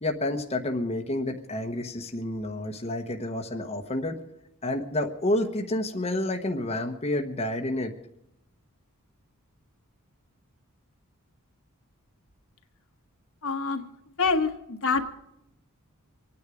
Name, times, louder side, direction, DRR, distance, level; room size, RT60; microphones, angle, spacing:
voice 1, 0.0-4.2 4.6-7.9, left 1 dB, 30° left, 3 dB, 1.1 m, -29 dB
voice 2, 13.4-13.8 14.2-15.1, left 4 dB, 65° left, 4 dB, 1.5 m, -26 dB
25.0 x 9.8 x 5.0 m, 0.83 s
head